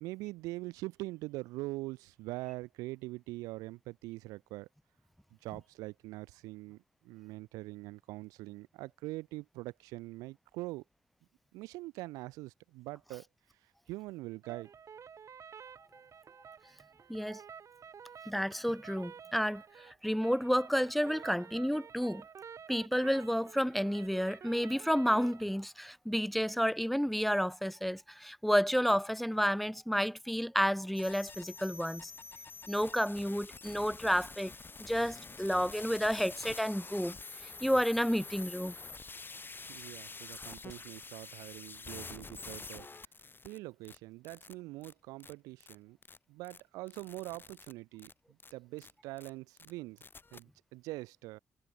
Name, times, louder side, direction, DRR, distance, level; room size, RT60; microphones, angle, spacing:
voice 1, 0.0-4.7 5.4-10.8 11.5-13.2 13.9-14.7 39.7-42.9 43.4-46.0 46.3-48.1 48.5-50.0 50.3-51.4, right 20 dB, 85° right, 1.0 m, -43 dB
sound 1, 14.4-25.4, right 7 dB, 60° right, 7.0 m, -51 dB
voice 2, 17.1-17.4 18.3-22.2 22.7-32.1 32.7-34.5 34.8-37.2 37.4-38.7, equal, ahead, 1.7 m, -31 dB
sound 2, 31.0-43.6 43.8-44.0 44.2-44.5 44.8-44.9 45.2-45.3 45.6-45.8 46.0-46.2 46.4-46.6 46.9-47.7 48.0-48.1 48.4-48.5 48.8-48.9 49.2-49.3 49.6-49.7 50.0-50.4, left 4 dB, 35° left, 5.0 m, -47 dB
hypercardioid pair, 45°, 6 cm